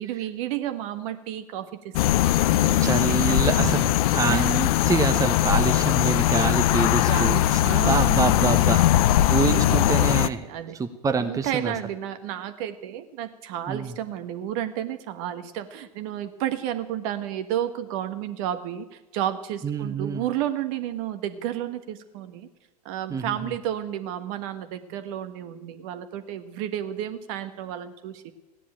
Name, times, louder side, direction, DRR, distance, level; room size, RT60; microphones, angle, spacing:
voice 1, 0.0-3.7 4.3-4.5 7.1-8.5 9.5-10.8 11.2-22.5 22.8-28.3, right 11 dB, 55° right, 9 dB, 1.4 m, -32 dB
sound 1, 1.9-10.3, left 13 dB, 60° left, 0.6 m, -20 dB
voice 2, 2.8-10.5 10.7-11.7 13.7-13.9 19.6-20.3 23.1-23.5, right 5 dB, 15° right, 8 dB, 0.9 m, -27 dB
15.0 x 10.0 x 8.7 m, 1.1 s
hypercardioid pair, 90°, 20 cm